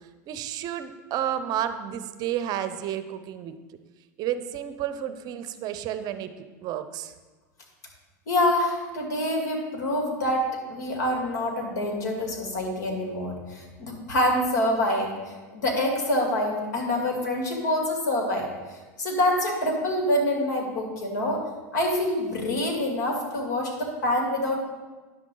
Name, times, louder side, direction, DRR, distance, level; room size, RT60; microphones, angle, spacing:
voice 1, 0.3-3.5 4.2-6.3 6.6-7.1, right 10 dB, 45° right, 11 dB, 0.6 m, -31 dB
voice 2, 8.3-18.5 19.0-21.4 21.7-24.6, left 1 dB, 75° left, 1 dB, 2.3 m, -26 dB
10.0 x 7.3 x 3.9 m, 1.2 s
supercardioid pair, 115°, 9 cm